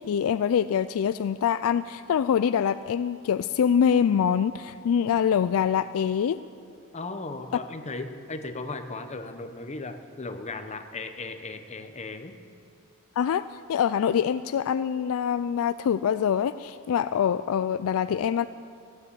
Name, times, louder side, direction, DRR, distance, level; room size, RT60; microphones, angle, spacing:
voice 1, 0.0-6.4 13.2-13.4 13.7-18.4, left 8 dB, 65° left, 13 dB, 0.3 m, -24 dB
voice 2, 6.9-12.4, left 3 dB, 30° left, 7 dB, 0.9 m, -36 dB
15.5 x 9.7 x 8.3 m, 2.4 s
head